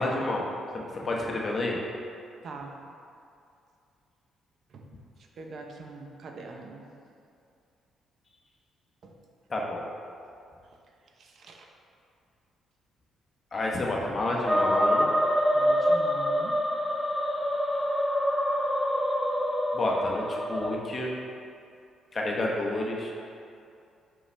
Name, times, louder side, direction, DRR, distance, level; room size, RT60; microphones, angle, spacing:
voice 1, 0.0-1.8 9.5-9.9 13.5-15.1 19.7-21.1 22.1-23.1, left 2 dB, 35° left, -1 dB, 0.9 m, -29 dB
voice 2, 5.4-6.8 9.0-9.1 11.2-11.7 15.5-16.5, right 3 dB, 60° right, 2 dB, 0.7 m, -43 dB
sound 1, 14.5-20.8, equal, 5° left, 0.4 m, -26 dB
5.5 x 5.4 x 3.3 m, 2.5 s
cardioid pair, 90°, 0 cm